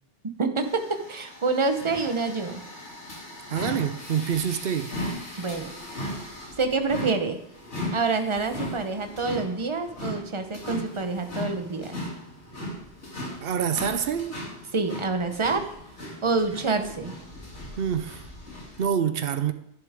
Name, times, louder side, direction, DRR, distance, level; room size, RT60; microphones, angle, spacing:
voice 1, 0.4-2.6 5.4-5.7 6.6-7.4 7.9-12.0 14.7-15.6 16.2-17.1, right 4 dB, 30° right, 0.9 m, -27 dB
sound 1, 0.6-18.8, left 1 dB, 70° left, 3.2 m, -38 dB
voice 2, 3.5-4.9 13.4-14.4 17.8-18.2 18.8-19.5, right 8 dB, 60° right, 0.8 m, -26 dB
11.0 x 10.5 x 3.6 m
omnidirectional pair, 1.2 m